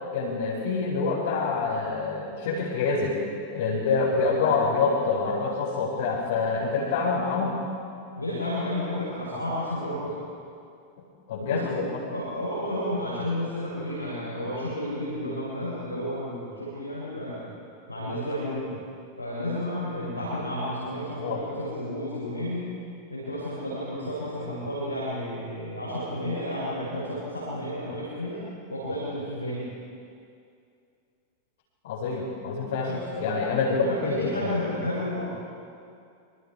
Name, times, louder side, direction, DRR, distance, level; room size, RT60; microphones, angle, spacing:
voice 1, 0.1-3.2 3.5-7.6 11.3-11.9 21.2-21.4 31.8-32.9 33.2-34.6, left 4 dB, 55° left, -5 dB, 5.0 m, -26 dB
voice 2, 8.2-10.2 11.4-17.4 17.9-18.8 19.2-22.6 23.1-28.4 28.7-29.6 32.8-33.3 33.7-35.3, left 1 dB, 85° left, -9 dB, 7.4 m, -32 dB
27.5 x 26.0 x 4.9 m, 2.5 s
figure-of-eight pair, 90°, 0 cm